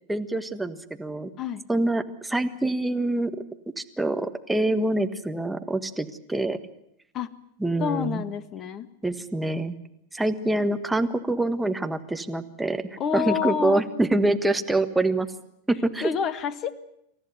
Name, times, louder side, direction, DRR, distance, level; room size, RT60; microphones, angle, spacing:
voice 1, 0.1-1.3 1.7-3.4 3.8-6.6 7.6-8.2 9.0-9.7 10.1-12.8 13.1-15.3 15.7-16.1, right 2 dB, 5° right, 7 dB, 1.5 m, -25 dB
voice 2, 7.8-8.9 13.0-13.8 16.0-16.7, left 7 dB, 30° left, 15 dB, 1.5 m, -28 dB
27.5 x 14.5 x 9.7 m, 0.77 s
figure-of-eight pair, 90°, 0 cm